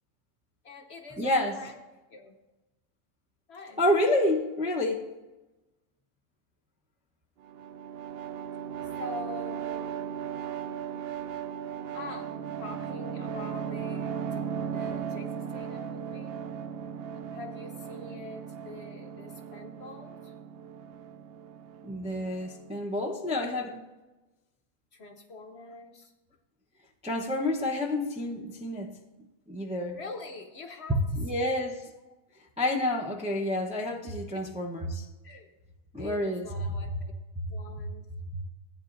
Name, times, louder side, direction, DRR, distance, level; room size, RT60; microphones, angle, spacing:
voice 1, 0.6-1.8 2.1-2.4 3.5-3.8 9.0-10.1 11.9-12.3 12.6-14.4 14.7-16.3 17.3-20.3 23.1-23.8 24.9-26.1 29.9-31.0 31.3-31.7 34.3-34.4 35.2-35.5 36.0-37.1 37.5-38.1, left 3 dB, 55° left, 5 dB, 0.9 m, -44 dB
voice 2, 1.2-1.6 3.8-5.1 21.8-23.8 27.0-29.0 29.5-30.0 31.1-31.9 32.6-35.1 35.9-36.5 38.3-38.4, left 1 dB, 10° right, 0 dB, 0.4 m, -29 dB
sound 1, 7.4-22.8, right 8 dB, 70° right, 0.6 m, -37 dB
15.5 x 9.4 x 2.5 m, 1.1 s
omnidirectional pair, 1.6 m